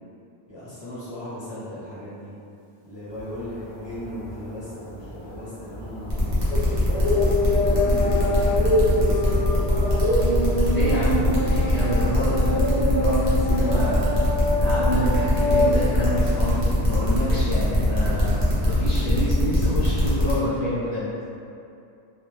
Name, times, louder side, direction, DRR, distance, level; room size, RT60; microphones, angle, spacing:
voice 1, 0.5-2.4 2.8-6.3 6.9-9.7, equal, 25° left, -12 dB, 0.8 m, -37 dB
sound 1, 3.1-20.2, left 1 dB, 55° left, 0.5 m, -27 dB
sound 2, 6.1-20.3, left 1 dB, 45° right, 0.8 m, -23 dB
voice 2, 10.7-14.1 14.6-21.1, equal, 75° left, -9 dB, 0.8 m, -27 dB
2.4 x 2.1 x 3.1 m, 2.6 s
omnidirectional pair, 1.2 m